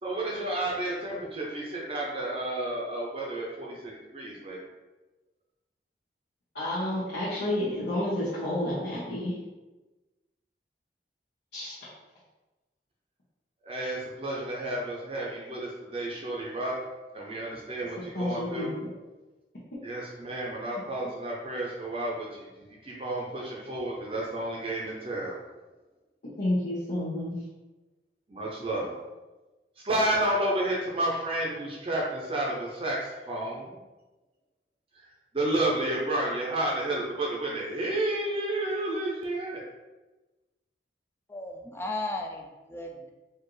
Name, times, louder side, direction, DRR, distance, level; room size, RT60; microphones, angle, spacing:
voice 1, 0.0-4.6 13.6-16.8 17.1-18.7 19.8-25.4 28.3-29.0 29.8-33.8 35.0-35.1 35.3-39.6, right 1 dB, 30° right, -3 dB, 0.6 m, -31 dB
voice 2, 6.5-9.3 11.5-11.8 18.1-18.9 26.4-27.3, left 1 dB, 80° left, -11 dB, 1.0 m, -30 dB
voice 3, 41.3-43.1, left 2 dB, 15° left, 2 dB, 0.3 m, -35 dB
4.3 x 2.5 x 3.1 m, 1.1 s
head